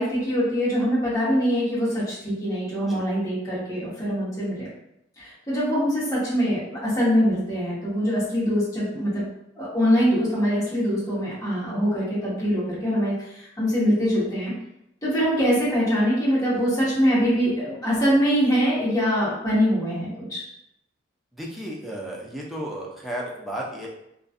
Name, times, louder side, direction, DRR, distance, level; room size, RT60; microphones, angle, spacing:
voice 1, 0.0-4.7 5.2-9.2 9.6-14.5 15.0-20.5, equal, 20° left, -9 dB, 1.0 m, -23 dB
voice 2, 21.3-23.9, right 1 dB, ahead, -4 dB, 0.4 m, -33 dB
2.5 x 2.3 x 2.4 m, 0.81 s
head